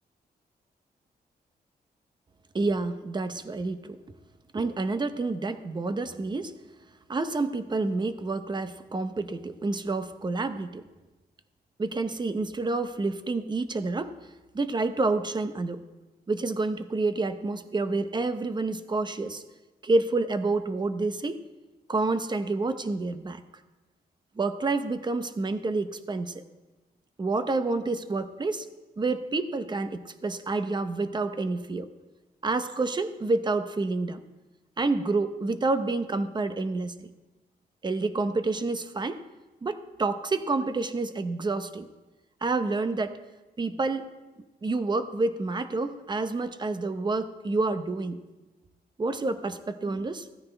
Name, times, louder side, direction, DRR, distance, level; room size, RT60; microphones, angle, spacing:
voice 1, 2.5-4.0 4.5-6.5 7.1-10.8 11.8-14.1 14.5-15.8 16.3-19.4 19.8-21.4 21.9-23.4 24.4-26.4 27.2-28.7 29.0-31.9 32.4-34.2 34.8-37.1 37.8-39.2 39.6-41.9 42.4-43.2 43.6-44.0 44.6-48.2 49.0-50.3, right 3 dB, 25° right, 10 dB, 0.8 m, -28 dB
16.0 x 14.0 x 3.4 m, 1.1 s
wide cardioid pair, 125°, 17 cm